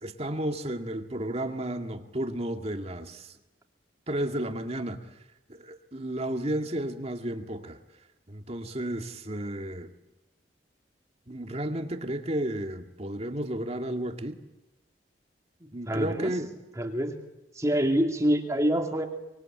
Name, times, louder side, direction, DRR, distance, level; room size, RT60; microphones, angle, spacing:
voice 1, 0.0-3.3 4.1-5.1 5.5-7.8 8.3-9.9 11.3-14.4 15.7-16.5, right 1 dB, 35° right, 2.1 m, -32 dB
voice 2, 15.6-16.3 16.8-17.2 17.5-19.1, equal, 20° right, 2.6 m, -26 dB
25.0 x 23.0 x 8.8 m
head